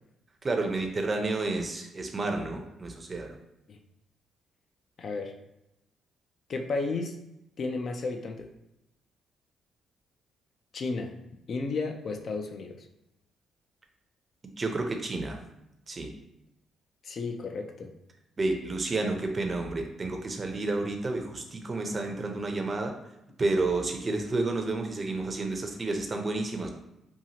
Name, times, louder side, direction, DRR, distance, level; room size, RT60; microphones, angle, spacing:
voice 1, 0.4-3.4 14.6-15.4 15.9-16.1 18.4-22.9 23.4-26.7, right 2 dB, 30° right, 4 dB, 0.5 m, -30 dB
voice 2, 5.0-5.4 6.5-7.2 7.6-8.5 10.7-11.2 11.5-12.9 17.0-17.9, left 3 dB, 55° left, 4 dB, 0.4 m, -33 dB
2.8 x 2.4 x 2.8 m, 0.89 s
cardioid pair, 90°, 0 cm